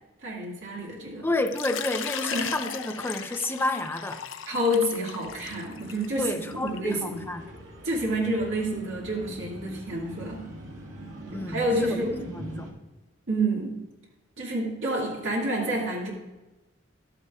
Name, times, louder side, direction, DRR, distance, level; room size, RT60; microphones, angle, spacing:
voice 1, 0.2-1.3 2.3-2.5 4.5-7.2 7.8-10.4 11.5-12.1 13.3-13.8 14.4-16.1, right 1 dB, 70° right, -3 dB, 2.0 m, -28 dB
voice 2, 1.2-4.2 6.1-7.5 11.3-12.7, left 1 dB, 10° left, 5 dB, 0.6 m, -30 dB
Water / Liquid, 1.5-7.0, left 8 dB, 85° left, 0.5 m, -37 dB
sound 1, 5.2-12.7, right 1 dB, 90° right, 1.9 m, -43 dB
12.0 x 9.8 x 2.4 m, 1.1 s
head